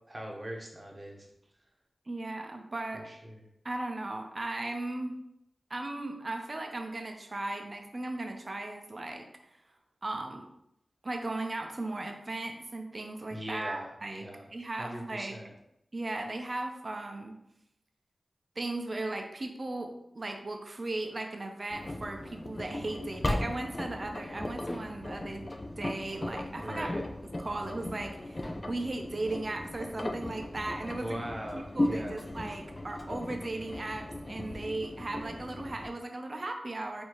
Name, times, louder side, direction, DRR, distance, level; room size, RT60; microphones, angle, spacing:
voice 1, 0.1-1.3 2.9-3.4 13.3-14.5 14.8-15.5 26.6-27.0 30.9-32.2, equal, 30° right, 0 dB, 1.0 m, -40 dB
voice 2, 2.1-3.1 3.6-5.1 5.7-9.3 10.0-10.5 11.0-15.4 15.9-17.3 18.6-25.5 25.8-26.9 27.4-31.2 31.5-37.0, right 2 dB, 45° right, 4 dB, 0.6 m, -37 dB
Engine, 21.7-35.9, left 1 dB, 35° left, 0.4 m, -37 dB
4.5 x 2.7 x 3.0 m, 0.81 s
wide cardioid pair, 55°, 0 cm